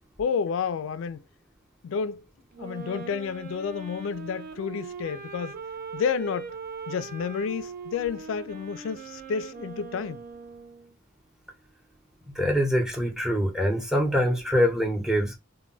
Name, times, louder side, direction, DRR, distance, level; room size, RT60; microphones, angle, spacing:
voice 1, 0.2-1.2 1.8-2.2 2.6-5.6 5.9-6.6 6.9-10.2, left 6 dB, 75° left, 0.3 m, -30 dB
Wind instrument woodwind instrument, 2.5-10.9, right 5 dB, 45° right, 0.5 m, -40 dB
voice 2, 12.3-15.4, equal, 5° right, 0.7 m, -24 dB
2.2 x 2.2 x 3.8 m
head